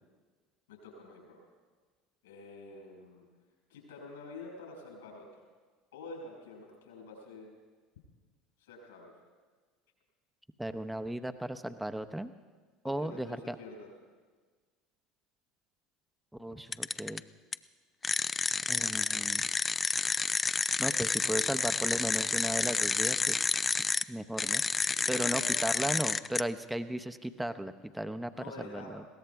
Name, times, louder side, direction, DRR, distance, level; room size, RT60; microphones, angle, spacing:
voice 1, 0.7-1.4 2.2-3.3 3.7-5.3 5.9-7.5 8.6-9.1 12.8-13.9 24.9-25.5 28.3-29.0, left 3 dB, 75° left, 1 dB, 5.6 m, -47 dB
voice 2, 10.6-12.3 12.8-13.6 16.4-17.2 18.7-19.5 20.8-23.4 24.1-24.6 25.1-28.3 28.6-29.1, right 1 dB, 5° right, 10 dB, 0.8 m, -36 dB
sound 1, 16.7-17.2 17.5-17.6 18.0-24.0 24.4-26.4, left 4 dB, 20° left, 0.4 m, -30 dB
21.0 x 17.0 x 3.5 m, 1.4 s
hypercardioid pair, 70°, 0 cm